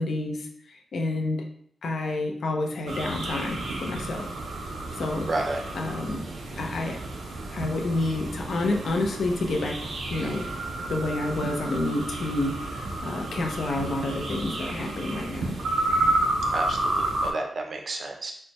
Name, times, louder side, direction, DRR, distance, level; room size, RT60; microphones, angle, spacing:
voice 1, 0.0-1.5 1.8-4.3 5.0-5.3 5.7-6.3 6.6-7.0 7.5-9.8 10.1-10.5 10.9-15.5, left 2 dB, 65° left, 3 dB, 0.5 m, -29 dB
sound 1, 2.9-17.3, right 2 dB, 90° right, 0.6 m, -31 dB
voice 2, 5.3-5.6 16.5-18.3, right 2 dB, 45° right, 2 dB, 0.5 m, -31 dB
4.4 x 2.2 x 3.0 m, 0.64 s
wide cardioid pair, 175°, 0 cm